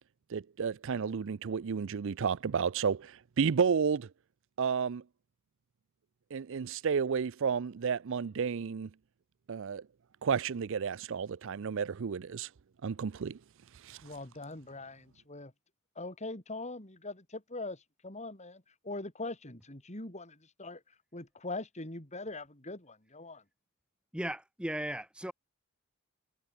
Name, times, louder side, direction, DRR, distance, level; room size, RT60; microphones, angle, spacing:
voice 1, 0.3-4.1 4.6-5.0 6.3-8.9 9.5-9.8 10.2-12.5 12.8-13.4 13.8-14.0, right 6 dB, 60° right, 0.5 m, -31 dB
voice 2, 14.0-15.5 16.0-20.8 21.1-23.4, left 2 dB, 30° left, 3.8 m, -42 dB
voice 3, 24.1-25.3, right 1 dB, 5° right, 1.0 m, -36 dB
head